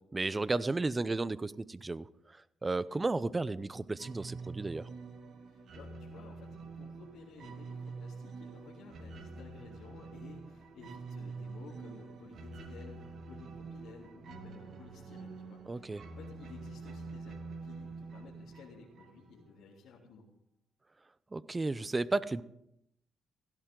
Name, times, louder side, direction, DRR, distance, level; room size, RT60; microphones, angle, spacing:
voice 1, 0.1-4.9 15.7-16.0 21.3-22.4, right 3 dB, 20° right, 17 dB, 0.6 m, -33 dB
sound 1, 4.0-19.5, right 4 dB, 65° right, 2.1 m, -46 dB
voice 2, 5.4-20.2, left 4 dB, 80° left, -5 dB, 3.2 m, -54 dB
17.0 x 16.0 x 3.9 m, 0.78 s
cardioid pair, 90°, 0 cm